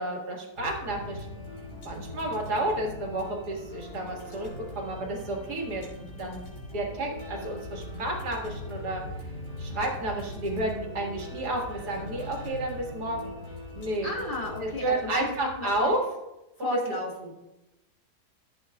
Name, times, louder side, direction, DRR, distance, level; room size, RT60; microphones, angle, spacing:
voice 1, 0.0-1.4 1.8-4.5 4.7-6.4 6.7-9.0 9.6-13.4 13.7-14.1 14.6-16.0 16.6-16.8, right 1 dB, 75° right, -1 dB, 2.4 m, -31 dB
sound 1, 0.6-15.9, left 1 dB, 80° left, 3.6 m, -41 dB
voice 2, 14.0-15.3 15.6-15.9 16.6-17.3, left 1 dB, 35° left, -2 dB, 1.8 m, -33 dB
15.0 x 8.2 x 2.3 m, 0.96 s
omnidirectional pair, 1.7 m